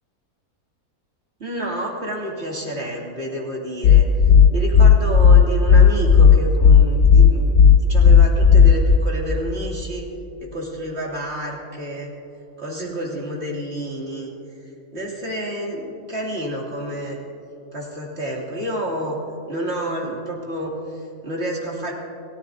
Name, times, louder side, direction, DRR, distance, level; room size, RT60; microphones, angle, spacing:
voice 1, 1.4-7.6 7.9-10.1 10.5-12.1 12.6-14.3 14.6-17.2 17.7-19.2 19.5-21.9, right 1 dB, 45° right, -3 dB, 2.7 m, -29 dB
sound 1, 3.8-9.0, left 7 dB, 75° left, 1.1 m, -11 dB
29.0 x 14.5 x 2.6 m, 2.8 s
omnidirectional pair, 1.6 m